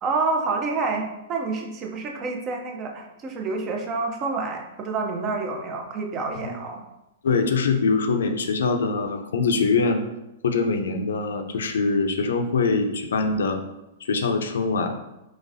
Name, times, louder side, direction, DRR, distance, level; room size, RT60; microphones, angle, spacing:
voice 1, 0.0-6.8, right 3 dB, 25° right, 2 dB, 0.5 m, -28 dB
voice 2, 7.2-10.0 10.4-13.6 14.0-15.0, left 4 dB, 85° left, 6 dB, 0.5 m, -23 dB
3.9 x 3.1 x 2.6 m, 0.92 s
hypercardioid pair, 150°, 0 cm